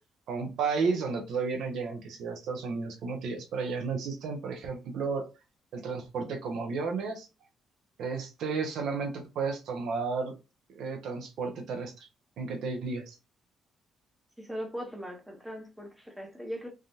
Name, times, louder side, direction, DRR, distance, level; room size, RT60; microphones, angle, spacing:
voice 1, 0.3-5.3 5.7-7.3 8.0-10.4 10.8-12.1 12.4-13.2, right 4 dB, 80° right, 0.8 m, -32 dB
voice 2, 14.4-16.7, equal, 5° right, 0.9 m, -39 dB
3.5 x 2.3 x 2.7 m
cardioid pair, 90°, 0 cm